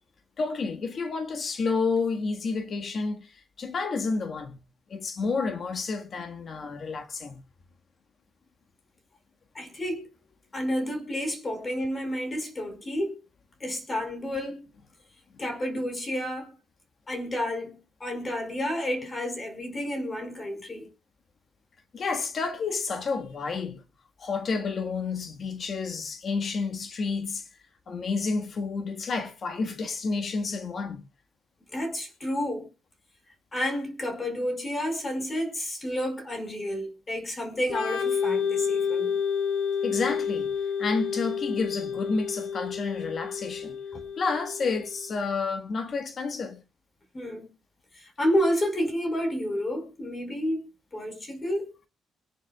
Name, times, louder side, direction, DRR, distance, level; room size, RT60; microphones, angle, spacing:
voice 1, 0.4-4.6 4.9-7.4 15.3-15.4 21.9-23.8 24.2-27.5 27.9-31.0 39.8-40.5 40.8-43.7 44.2-46.6, left 4 dB, 50° left, 1.6 m, -30 dB
voice 2, 9.5-10.1 10.5-13.2 13.6-14.7 15.4-16.5 17.1-20.9 31.7-32.7 33.5-39.2 43.9-44.0 47.1-47.5 47.9-51.7, equal, 30° left, 4.7 m, -30 dB
Organ, 37.7-45.2, left 6 dB, 80° left, 3.8 m, -30 dB
23.5 x 10.5 x 2.4 m
cardioid pair, 90°, 0 cm